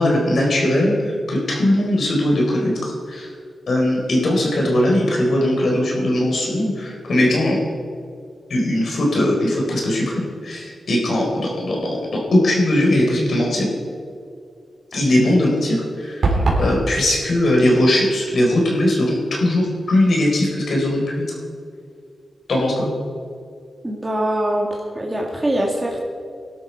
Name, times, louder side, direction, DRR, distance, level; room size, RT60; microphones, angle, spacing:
voice 1, 0.0-3.3 3.7-7.6 8.5-13.7 14.9-16.3 16.6-21.3 22.5-22.9, left 1 dB, 65° left, -1 dB, 3.9 m, -19 dB
sound 1, 16.2-16.7, right 2 dB, 60° right, 3.6 m, -18 dB
voice 2, 23.8-24.7 24.9-26.0, right 1 dB, 15° right, -2 dB, 2.0 m, -22 dB
19.5 x 11.5 x 4.6 m, 2.3 s
wide cardioid pair, 110°, 0 cm